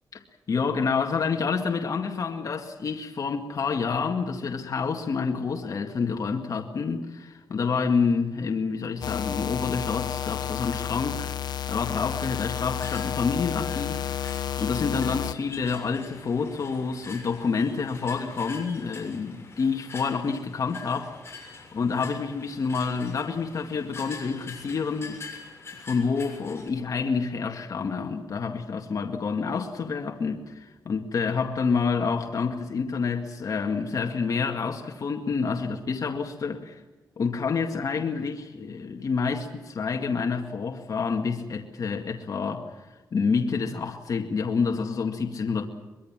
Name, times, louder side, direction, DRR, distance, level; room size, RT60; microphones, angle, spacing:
voice 1, 0.5-25.2 25.8-36.8 37.2-45.6, left 5 dB, 55° left, 2.0 m, -28 dB
sound 1, 9.0-15.3, left 9 dB, 85° left, 0.8 m, -31 dB
sound 2, 11.8-26.7, left 4 dB, 40° left, 6.9 m, -45 dB
24.0 x 22.5 x 7.5 m
cardioid pair, 100°, 7 cm